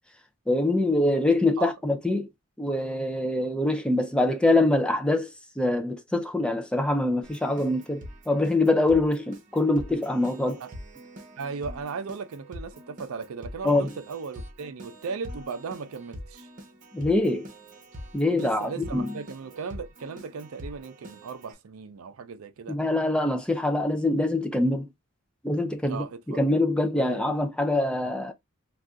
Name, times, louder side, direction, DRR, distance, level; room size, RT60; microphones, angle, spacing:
voice 1, 0.5-2.3 2.6-5.3 5.6-10.6 13.6-13.9 16.9-17.5 18.1-19.1 22.7-24.9 25.4-28.3, left 2 dB, 5° left, 0.3 m, -24 dB
Keyboard (musical), 7.2-21.5, equal, 40° right, 0.8 m, -44 dB
voice 2, 11.4-16.5 18.4-22.8 25.9-26.4 27.0-27.3, right 5 dB, 90° right, 0.5 m, -37 dB
2.5 x 2.4 x 3.4 m
head